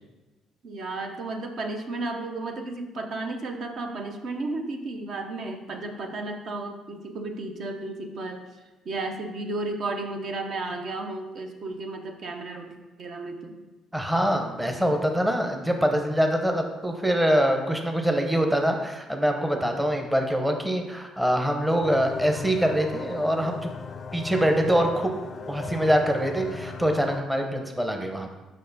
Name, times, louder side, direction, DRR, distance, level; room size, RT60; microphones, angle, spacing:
voice 1, 0.6-8.4 8.8-13.6, right 2 dB, 55° right, 4 dB, 0.8 m, -33 dB
voice 2, 13.9-23.7 24.1-25.1 25.5-28.3, equal, 5° right, 3 dB, 0.8 m, -24 dB
sound 1, 21.8-27.2, left 5 dB, 40° left, 0.4 m, -37 dB
6.4 x 5.4 x 4.0 m, 1.1 s
cardioid pair, 105°, 0 cm